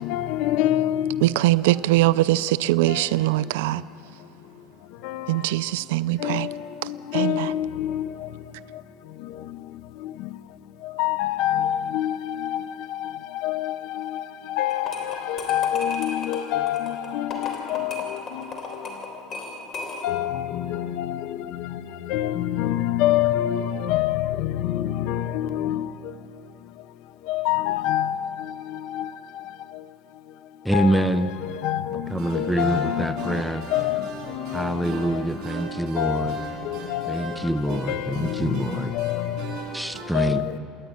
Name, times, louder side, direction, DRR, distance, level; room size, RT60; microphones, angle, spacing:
voice 1, 0.0-1.3 2.9-3.2 5.0-5.4 6.2-8.3 9.2-9.6 10.0-10.3 10.8-18.8 20.0-26.1 27.3-29.4 30.7-35.2 36.0-39.6 40.1-40.6, left 12 dB, 60° left, 0.9 m, -27 dB
voice 2, 1.2-3.8 5.3-6.5 7.1-7.5, right 17 dB, 90° right, 0.4 m, -22 dB
sound 1, 14.7-20.3, left 3 dB, 30° left, 3.5 m, -36 dB
voice 3, 30.6-31.3 32.1-33.7 34.5-36.3 37.1-38.9 39.7-40.4, right 1 dB, ahead, 0.6 m, -25 dB
sound 2, 32.0-40.0, right 4 dB, 40° right, 6.1 m, -38 dB
26.5 x 10.5 x 9.8 m
cardioid pair, 155°, 0 cm